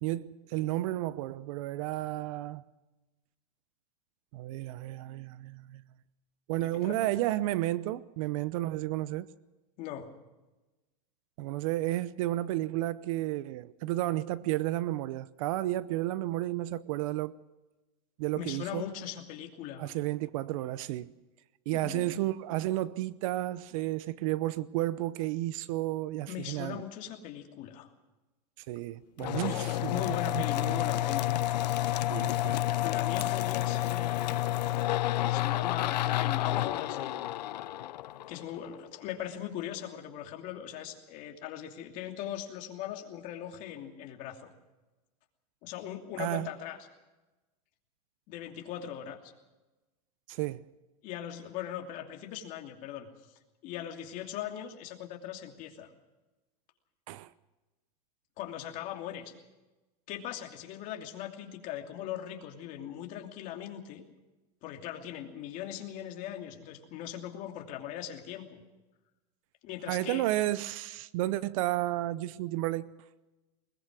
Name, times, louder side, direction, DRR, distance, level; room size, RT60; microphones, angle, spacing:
voice 1, 0.0-2.6 4.3-5.8 6.5-9.3 11.4-17.3 18.2-18.8 19.8-21.1 21.7-26.8 28.6-30.9 32.1-32.7 46.2-46.5 50.3-50.6 57.1-57.3 69.9-72.9, right 15 dB, 55° right, 0.8 m, -32 dB
voice 2, 6.6-7.0 9.8-10.1 18.4-19.9 21.7-22.2 26.3-27.9 29.4-31.3 32.8-34.9 35.3-37.1 38.3-44.5 45.6-46.8 48.3-49.3 51.0-55.9 58.4-59.3 60.1-64.0 64.6-68.6 69.6-70.2, left 11 dB, 40° left, 2.8 m, -40 dB
sound 1, 29.2-38.8, left 14 dB, 90° left, 0.8 m, -30 dB
21.0 x 20.5 x 6.2 m
supercardioid pair, 150°, 21 cm